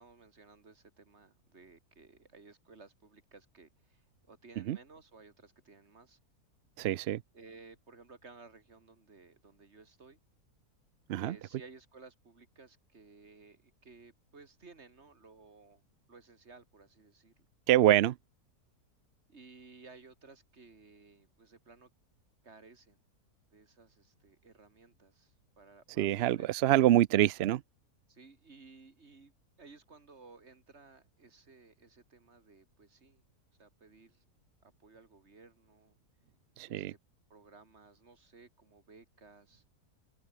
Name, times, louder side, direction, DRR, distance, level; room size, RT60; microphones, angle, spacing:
voice 1, 0.0-6.2 7.3-10.2 11.2-15.8 16.1-17.5 19.3-21.9 22.4-23.0 23.5-26.5 28.1-33.2 33.6-34.2 34.6-36.0 36.6-37.0 37.3-39.6, right 4 dB, 45° right, 2.7 m, -57 dB
voice 2, 6.8-7.2 11.1-11.4 17.7-18.2 26.0-27.6 36.6-36.9, right 13 dB, 80° right, 0.5 m, -25 dB
open air
omnidirectional pair, 1.6 m